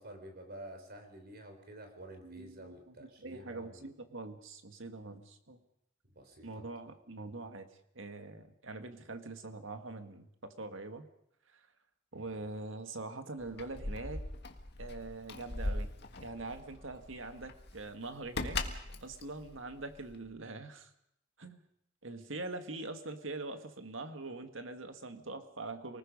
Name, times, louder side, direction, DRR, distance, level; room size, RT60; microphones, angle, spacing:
voice 1, 0.0-3.9 6.0-6.6 12.1-12.4, right 1 dB, 55° right, 6 dB, 3.9 m, -50 dB
voice 2, 2.2-5.6 6.4-7.7 8.0-11.1 11.5-11.7 12.1-14.2 14.8-15.9 16.2-18.6 19.0-20.9 21.4-21.6 22.0-26.0, right 2 dB, 85° right, 7 dB, 1.9 m, -43 dB
Keys jangling, 13.4-20.3, left 2 dB, 60° left, 1.8 m, -40 dB
28.5 x 19.5 x 5.4 m, 0.75 s
head